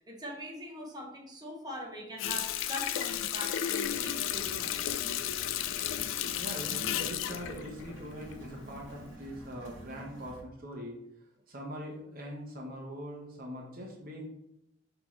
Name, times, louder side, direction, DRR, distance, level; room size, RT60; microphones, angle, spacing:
voice 1, 0.1-4.9, equal, 20° right, -1 dB, 0.9 m, -42 dB
Water tap faucet, 2.2-8.6 9.0-9.1, left 10 dB, 85° left, 0.3 m, -33 dB
sound 1, 3.9-10.4, equal, 80° right, 1.0 m, -49 dB
voice 2, 6.4-11.0 11.5-14.2, equal, 50° right, -1 dB, 0.8 m, -42 dB
5.9 x 2.9 x 3.0 m, 0.84 s
head